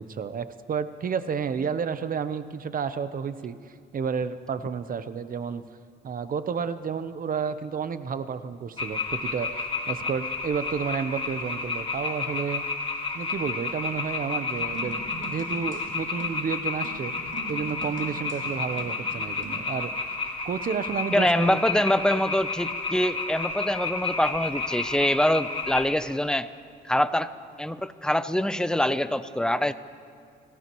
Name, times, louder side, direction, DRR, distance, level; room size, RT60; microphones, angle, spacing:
voice 1, 0.0-3.6 3.9-5.6 6.0-12.6 13.1-17.1 17.5-20.1 20.4-21.6, right 6 dB, 45° right, 12 dB, 0.8 m, -31 dB
sound 1, 8.8-25.9, left 4 dB, 30° left, 1.8 m, -31 dB
sound 2, 14.6-19.7, right 4 dB, 70° right, 2.8 m, -43 dB
voice 2, 21.1-26.5 26.8-27.3 27.6-29.7, left 1 dB, 5° left, 12 dB, 0.6 m, -24 dB
30.0 x 14.5 x 3.1 m, 2.2 s
cardioid pair, 90°, 20 cm